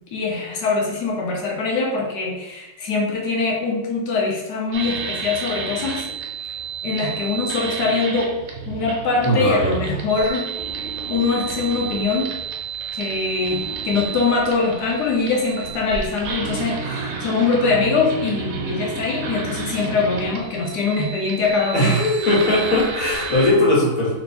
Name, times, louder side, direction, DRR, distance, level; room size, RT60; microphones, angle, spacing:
voice 1, 0.1-6.1 6.8-8.4 8.7-12.4 12.9-21.9, left 4 dB, 65° left, -1 dB, 1.3 m, -23 dB
sound 1, 4.7-23.5, right 5 dB, 70° right, 1.2 m, -31 dB
voice 2, 9.2-9.9 21.7-24.1, left 1 dB, 45° left, -6 dB, 1.8 m, -19 dB
3.3 x 3.0 x 4.2 m, 0.97 s
omnidirectional pair, 2.0 m